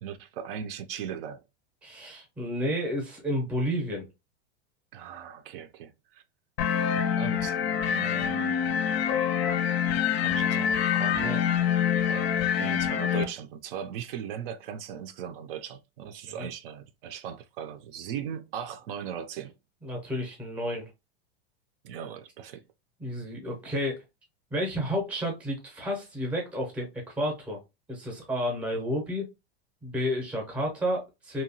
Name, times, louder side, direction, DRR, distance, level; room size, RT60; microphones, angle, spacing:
voice 1, 0.0-1.4 4.9-6.2 7.2-8.6 10.2-11.5 12.1-19.5 21.8-22.6, right 8 dB, 65° right, 0.4 m, -38 dB
voice 2, 1.8-4.1 16.3-16.5 19.8-20.9 23.0-24.0 24.5-26.9 27.2-27.6 27.9-29.3 29.8-31.4, equal, 5° right, 0.5 m, -31 dB
sound 1, 6.6-13.2, left 8 dB, 90° left, 0.5 m, -26 dB
2.8 x 2.2 x 2.6 m
supercardioid pair, 170°, 31 cm